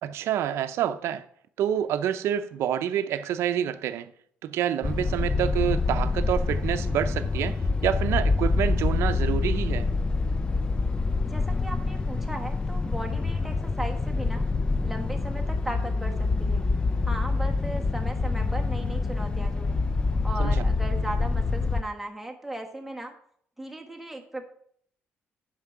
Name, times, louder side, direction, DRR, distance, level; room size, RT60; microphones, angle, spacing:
voice 1, 0.0-1.2 1.6-4.1 4.4-9.9 20.4-20.6, right 10 dB, 80° right, 0.6 m, -28 dB
sound 1, 4.8-21.8, left 3 dB, 20° left, 0.4 m, -26 dB
voice 2, 11.3-14.4 14.8-16.6 17.0-19.8 20.2-23.1 23.6-24.5, right 1 dB, 5° right, 1.4 m, -37 dB
9.5 x 6.2 x 4.6 m
cardioid pair, 115°, 4 cm